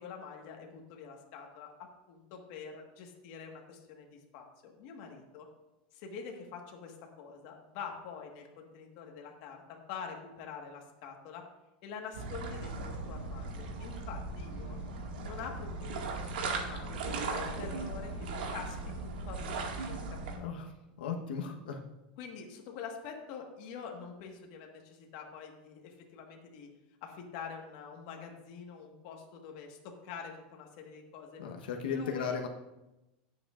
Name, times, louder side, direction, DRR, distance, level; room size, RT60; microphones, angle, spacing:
voice 1, 0.0-5.5 5.9-11.5 11.8-14.8 15.2-20.6 22.2-26.7 27.0-31.4 31.9-32.4, left 6 dB, 40° left, 1 dB, 1.5 m, -46 dB
sound 1, 12.1-20.4, right 3 dB, 80° right, 2.0 m, -38 dB
voice 2, 21.0-21.8 31.4-32.5, left 6 dB, 80° left, 2 dB, 1.1 m, -36 dB
16.5 x 7.9 x 2.5 m, 0.98 s
supercardioid pair, 180°, 5 cm